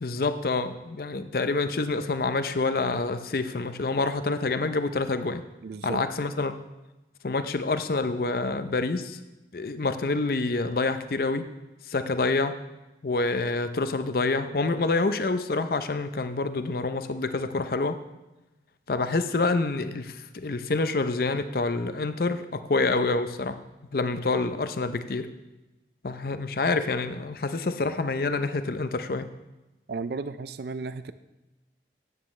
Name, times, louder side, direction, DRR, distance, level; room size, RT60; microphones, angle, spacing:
voice 1, 0.0-5.4 5.8-6.6 7.2-9.2 9.5-11.5 11.9-12.6 13.0-18.0 18.9-23.6 23.9-25.3 26.0-29.3, left 3 dB, 55° left, 10 dB, 0.6 m, -27 dB
voice 2, 5.6-6.0 29.9-31.1, right 4 dB, 60° right, 13 dB, 0.4 m, -34 dB
13.5 x 9.1 x 3.2 m, 1.0 s
head